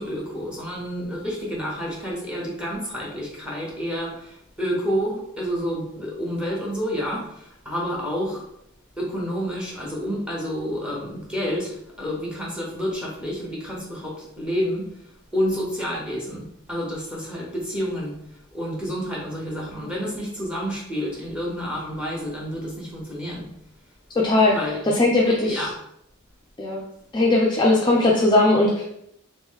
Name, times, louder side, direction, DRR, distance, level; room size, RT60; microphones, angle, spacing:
voice 1, 0.0-8.5 9.0-23.5 24.5-24.8 25.3-25.7, equal, 5° right, -3 dB, 0.9 m, -29 dB
voice 2, 24.1-24.5 24.9-25.7 26.6-26.8 27.1-28.8, left 2 dB, 20° left, -3 dB, 0.4 m, -19 dB
3.1 x 3.0 x 3.6 m, 0.77 s
head